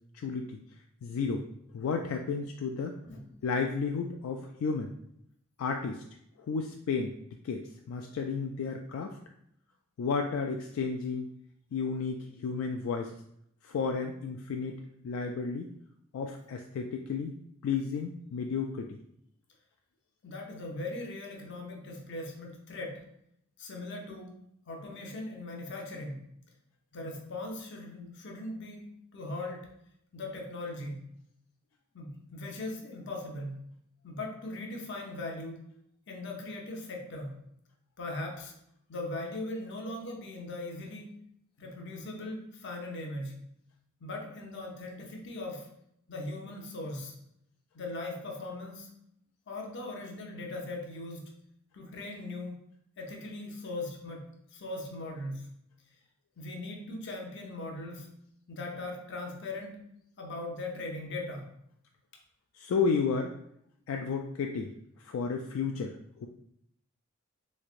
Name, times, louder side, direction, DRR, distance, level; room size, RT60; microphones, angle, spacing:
voice 1, 0.1-0.6 1.0-1.4 1.7-3.0 3.4-4.9 5.6-6.0 6.4-7.2 7.4-9.2 10.0-11.3 11.7-13.1 13.6-15.7 16.1-17.4 17.6-19.0 62.6-63.3 63.9-64.7 65.0-66.3, left 5 dB, 80° left, 3 dB, 0.3 m, -32 dB
voice 2, 20.2-23.1 23.6-26.3 26.9-29.8 30.1-31.1 31.9-33.6 34.0-35.7 36.1-37.4 38.0-38.5 38.9-41.2 41.6-43.4 44.0-45.7 46.1-47.2 47.7-48.9 49.5-51.3 51.7-52.6 53.0-55.5 56.4-58.1 58.5-59.8 60.2-61.5, left 2 dB, 60° left, 1 dB, 0.7 m, -39 dB
3.6 x 3.2 x 2.4 m, 0.73 s
head